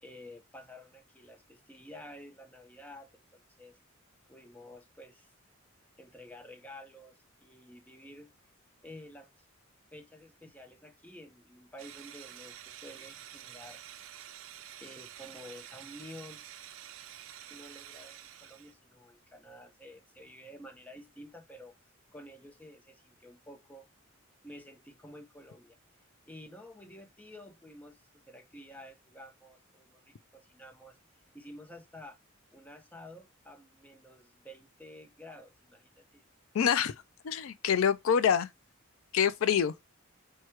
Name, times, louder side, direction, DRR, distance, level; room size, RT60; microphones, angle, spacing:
voice 1, 0.0-3.8 4.3-5.3 6.0-8.3 8.8-9.4 9.9-13.8 14.8-16.4 17.5-21.7 22.1-23.9 24.4-25.8 26.3-31.0 31.3-32.2 32.5-36.3, left 1 dB, 10° left, 0.7 m, -51 dB
sound 1, 11.8-18.7, right 11 dB, 70° right, 0.5 m, -49 dB
voice 2, 36.5-36.9 37.2-38.5 39.1-39.7, left 7 dB, 75° left, 0.4 m, -26 dB
4.7 x 2.2 x 4.4 m
head